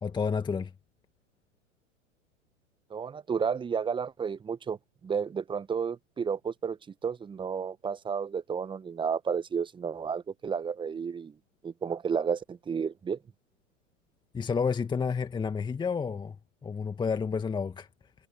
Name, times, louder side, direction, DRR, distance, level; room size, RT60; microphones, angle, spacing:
voice 1, 0.0-0.7 14.3-16.4 16.6-17.9, left 5 dB, 10° left, 2.0 m, -30 dB
voice 2, 2.9-4.8 5.0-11.3 11.6-13.2, right 6 dB, 10° right, 1.4 m, -32 dB
figure-of-eight pair, 100°, 39 cm